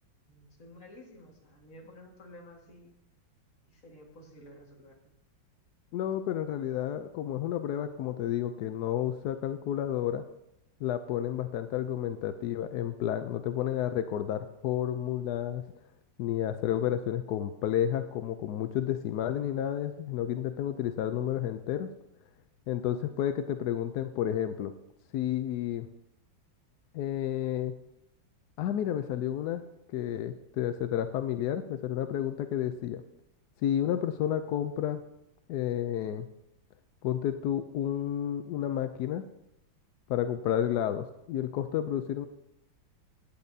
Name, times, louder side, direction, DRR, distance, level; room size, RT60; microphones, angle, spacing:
voice 1, 0.3-2.9 3.7-5.1, left 1 dB, 45° left, 0 dB, 2.2 m, -52 dB
voice 2, 5.9-10.2 10.8-15.6 16.2-21.9 22.7-24.7 25.1-25.9 26.9-27.7 28.6-29.6 29.9-33.0 33.6-35.0 35.5-36.3 37.0-39.2 40.1-42.3, left 10 dB, 75° left, 9 dB, 0.9 m, -31 dB
16.5 x 8.5 x 2.7 m, 0.83 s
omnidirectional pair, 2.1 m